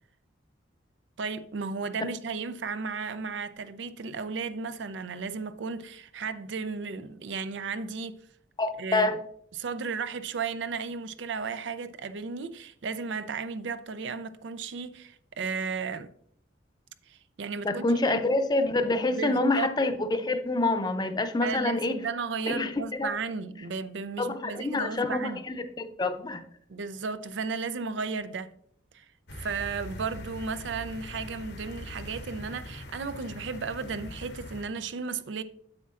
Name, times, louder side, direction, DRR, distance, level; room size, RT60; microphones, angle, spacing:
voice 1, 1.2-8.2 8.8-9.1 9.5-16.1 17.1-18.2 19.2-19.7 21.4-25.4 26.7-28.5 28.9-29.1 29.4-35.4, right 5 dB, 80° right, 0.5 m, -34 dB
voice 2, 8.6-9.2 17.6-22.0 22.5-23.1 24.2-26.4, left 2 dB, 25° left, 0.6 m, -27 dB
sound 1, 29.3-34.6, left 1 dB, 60° left, 0.9 m, -42 dB
9.6 x 7.3 x 2.4 m
head